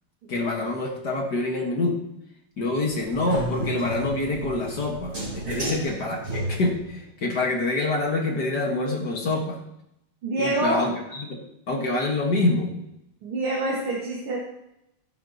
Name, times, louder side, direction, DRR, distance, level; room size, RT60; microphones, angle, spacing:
voice 1, 0.3-2.0 2.6-5.2 5.5-9.6 10.4-12.7, left 2 dB, 50° left, 0 dB, 2.1 m, -26 dB
sound 1, 2.9-7.0, right 1 dB, 35° right, 4.5 m, -33 dB
voice 2, 10.2-10.8 13.2-14.4, right 2 dB, 80° right, -3 dB, 2.6 m, -26 dB
16.0 x 9.3 x 2.9 m, 0.82 s
omnidirectional pair, 2.4 m